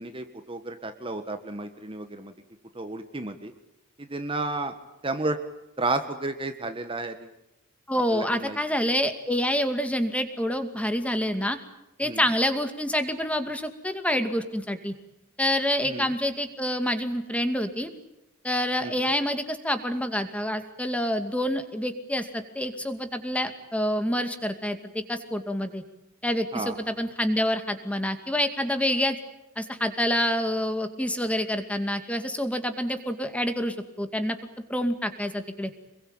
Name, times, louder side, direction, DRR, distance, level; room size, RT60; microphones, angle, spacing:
voice 1, 0.0-2.3 2.7-3.5 4.0-4.7 5.0-5.4 5.8-7.3 8.1-8.6 12.0-12.2 15.8-16.1 18.8-19.1 26.5-26.8, right 2 dB, 25° right, 7 dB, 1.5 m, -32 dB
voice 2, 7.9-11.6 12.0-14.9 15.4-17.9 18.4-25.8 26.2-29.2 29.6-34.4 34.7-35.7, equal, 5° left, 8 dB, 2.4 m, -27 dB
26.5 x 22.5 x 8.9 m, 0.88 s
head